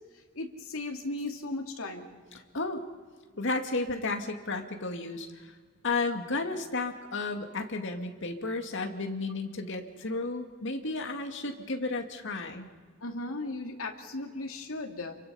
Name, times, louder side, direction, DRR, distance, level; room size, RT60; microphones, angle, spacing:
voice 1, 0.3-2.1 13.0-15.1, left 2 dB, 80° left, 3 dB, 2.7 m, -36 dB
voice 2, 3.4-5.6 5.8-12.7, left 3 dB, 60° left, 5 dB, 2.3 m, -33 dB
29.5 x 23.5 x 5.6 m, 1.5 s
head